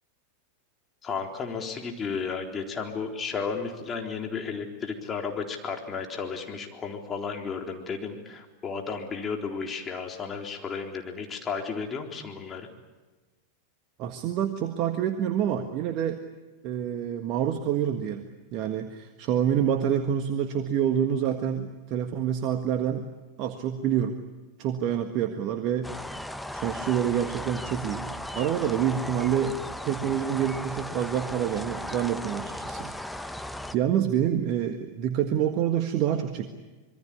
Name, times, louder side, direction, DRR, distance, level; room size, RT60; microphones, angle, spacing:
voice 1, 1.0-12.7, left 5 dB, 25° left, 2 dB, 3.9 m, -33 dB
voice 2, 14.0-16.2 16.6-23.1 23.4-24.2 24.6-25.9 26.5-33.5 33.7-36.5, right 9 dB, 45° right, 7 dB, 1.6 m, -27 dB
sound 1, 25.8-33.8, left 1 dB, 5° left, 1.1 m, -36 dB
26.0 x 22.5 x 8.6 m, 1.2 s
figure-of-eight pair, 90°, 0 cm